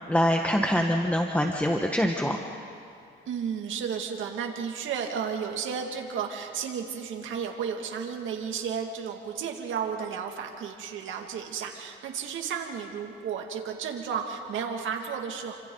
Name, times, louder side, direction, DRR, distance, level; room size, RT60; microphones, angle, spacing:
voice 1, 0.1-2.4, equal, 5° left, 2 dB, 1.3 m, -24 dB
voice 2, 3.3-15.6, right 7 dB, 80° right, 2 dB, 2.3 m, -33 dB
29.0 x 25.5 x 4.0 m, 2.6 s
cardioid pair, 90°, 20 cm